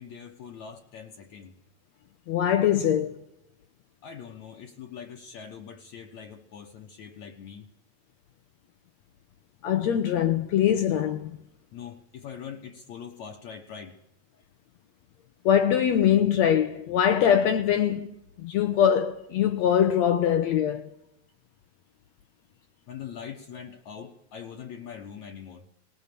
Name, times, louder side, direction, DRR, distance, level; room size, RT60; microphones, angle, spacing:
voice 1, 0.0-1.5 4.0-7.7 11.7-14.0 22.9-25.7, left 7 dB, 65° left, 2.1 m, -42 dB
voice 2, 2.3-3.2 9.6-11.4 15.4-18.1 18.4-20.9, left 9 dB, 80° left, 1.6 m, -23 dB
20.0 x 19.0 x 6.8 m
omnidirectional pair, 4.3 m